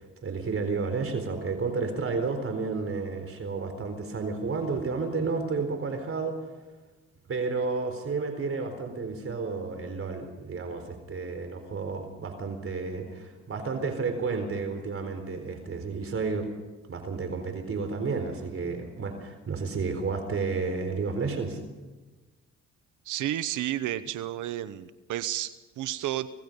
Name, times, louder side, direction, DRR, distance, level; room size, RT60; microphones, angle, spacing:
voice 1, 0.2-6.4 7.3-16.5 16.9-21.6, right 4 dB, 45° right, 6 dB, 4.2 m, -31 dB
voice 2, 23.0-26.3, right 13 dB, 85° right, 13 dB, 1.0 m, -31 dB
26.0 x 18.5 x 5.4 m, 1.2 s
cardioid pair, 90°, 30 cm